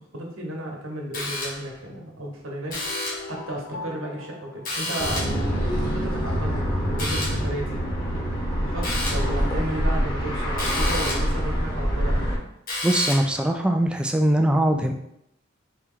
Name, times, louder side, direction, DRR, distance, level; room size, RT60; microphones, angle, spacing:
voice 1, 0.1-2.8 3.2-5.2 5.8-7.8 8.6-12.2, right 1 dB, 75° right, -1 dB, 1.1 m, -33 dB
sound 1, 1.1-1.8 2.7-3.4 4.6-5.5 7.0-7.5 8.8-9.3 10.6-11.4 12.7-13.4, left 2 dB, 45° left, 1.3 m, -30 dB
sound 2, 2.6-5.7, left 3 dB, 70° left, 0.5 m, -40 dB
sound 3, 5.0-12.4, equal, 25° left, 1.0 m, -25 dB
voice 2, 12.8-14.9, right 1 dB, 5° right, 4 dB, 0.3 m, -21 dB
4.3 x 3.0 x 3.8 m, 0.76 s
head